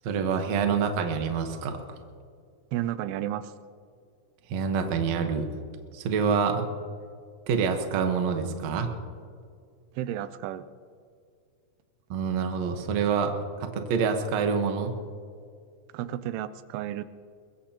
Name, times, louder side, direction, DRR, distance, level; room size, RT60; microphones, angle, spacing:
voice 1, 0.0-1.8 4.5-5.5 5.9-6.6 7.5-8.9 12.1-13.3 13.6-14.9, right 6 dB, 60° right, 5 dB, 1.9 m, -26 dB
voice 2, 2.7-3.5 10.0-10.7 15.9-17.1, right 12 dB, 90° right, 13 dB, 2.7 m, -32 dB
22.5 x 21.5 x 2.9 m, 2.2 s
omnidirectional pair, 4.6 m